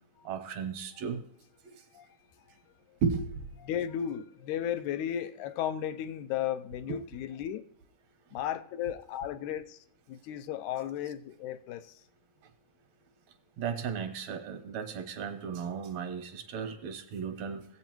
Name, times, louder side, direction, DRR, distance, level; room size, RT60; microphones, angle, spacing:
voice 1, 0.3-1.2 3.0-3.3 6.9-7.0 13.6-17.7, right 6 dB, 70° right, 2.0 m, -34 dB
voice 2, 3.6-7.7 8.3-9.8 10.1-11.9, left 10 dB, 80° left, 1.9 m, -35 dB
18.5 x 7.9 x 3.0 m
omnidirectional pair, 3.5 m